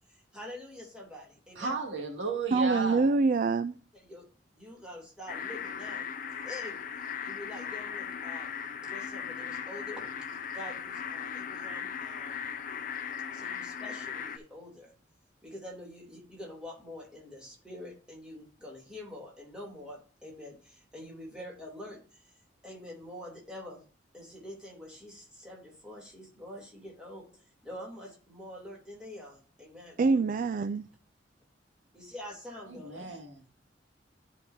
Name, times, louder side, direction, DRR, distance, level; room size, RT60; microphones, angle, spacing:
voice 1, 0.1-1.7 3.9-6.1 6.4-6.7 7.2-8.5 8.8-12.4 13.3-14.9 15.4-22.4 22.6-23.8 24.1-30.0 31.9-33.2, left 1 dB, 5° right, 3.0 m, -46 dB
voice 2, 1.6-3.1 32.7-33.5, right 4 dB, 85° right, 2.3 m, -34 dB
voice 3, 2.5-3.7 30.0-30.8, right 4 dB, 45° right, 0.3 m, -25 dB
sound 1, 5.3-14.4, left 7 dB, 45° left, 0.7 m, -38 dB
13.0 x 5.4 x 2.7 m
head